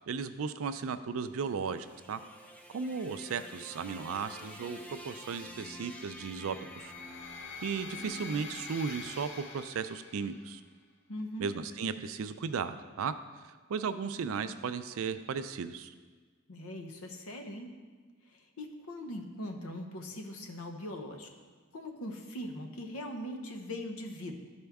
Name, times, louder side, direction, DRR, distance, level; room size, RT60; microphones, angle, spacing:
voice 1, 0.1-2.2 2.7-4.8 5.0-6.9 7.6-10.6 11.4-13.1 13.7-15.9, right 5 dB, 75° right, 11 dB, 0.4 m, -35 dB
sound 1, 1.1-9.4, equal, 10° left, 0.6 m, -50 dB
sound 2, 5.5-10.6, left 4 dB, 55° left, 0.7 m, -46 dB
voice 2, 11.1-11.5 16.5-17.7 18.3-21.3 21.7-24.4, left 1 dB, 90° left, 4 dB, 0.9 m, -41 dB
12.0 x 4.3 x 3.5 m, 1.4 s
head